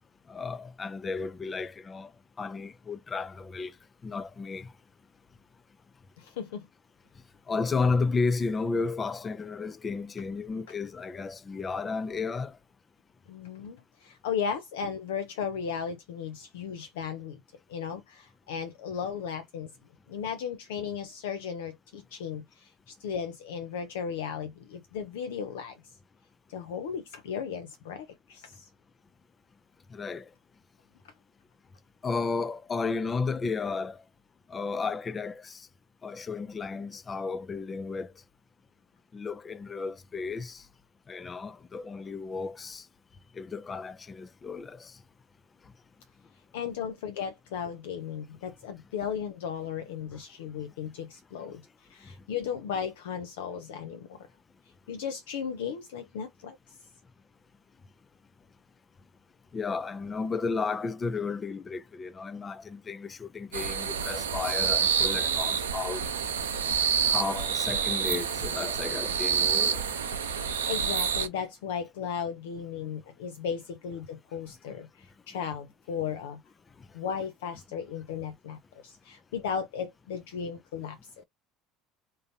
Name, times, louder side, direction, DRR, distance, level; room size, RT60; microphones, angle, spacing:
voice 1, 0.3-2.1 2.4-3.7 4.0-4.7 7.5-12.6 29.9-30.3 32.0-34.0 34.5-35.7 36.0-38.1 39.1-40.6 41.1-42.9 43.3-45.0 59.5-66.0 67.1-69.8 76.8-76.9, left 4 dB, 30° left, 0.4 m, -33 dB
voice 2, 6.2-6.7 13.3-17.4 17.7-19.7 20.1-25.8 26.5-28.7 46.5-51.6 51.9-54.3 54.9-56.6 70.3-76.4 76.9-81.2, left 7 dB, 75° left, 0.6 m, -36 dB
sound 1, 63.5-71.3, right 7 dB, 85° right, 0.6 m, -28 dB
3.7 x 2.6 x 2.7 m
hypercardioid pair, 70°, 0 cm